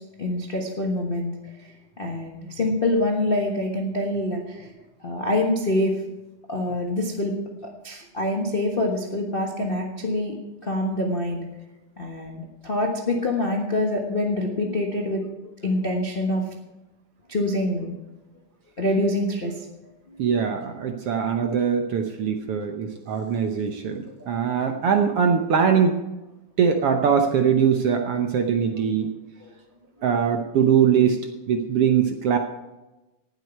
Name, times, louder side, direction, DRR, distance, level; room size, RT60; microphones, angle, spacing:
voice 1, 0.2-1.3 1.6-6.0 6.5-7.3 7.8-10.4 10.6-11.4 12.0-15.3 15.6-16.4 17.3-17.9 18.8-19.7 24.2-24.5 29.4-29.5, left 1 dB, 50° left, 0 dB, 0.6 m, -25 dB
voice 2, 20.2-26.0 26.6-29.1 30.0-31.2 31.5-32.4, right 7 dB, 65° right, 4 dB, 1.5 m, -22 dB
19.0 x 8.1 x 4.5 m, 1.0 s
omnidirectional pair, 3.5 m